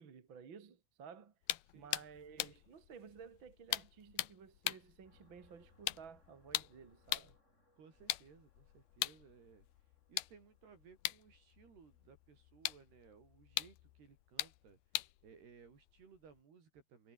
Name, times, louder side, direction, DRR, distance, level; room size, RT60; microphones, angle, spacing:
voice 1, 0.0-1.3 1.7-7.4, right 6 dB, 40° right, 2.2 m, -55 dB
sound 1, 1.4-7.4 8.0-16.4, left 16 dB, 75° left, 2.6 m, -43 dB
voice 2, 1.6-2.0 7.8-9.7 10.1-17.1, right 6 dB, 75° right, 6.9 m, -61 dB
sound 2, 5.0-14.6, left 1 dB, 15° left, 7.7 m, -75 dB
omnidirectional pair, 4.7 m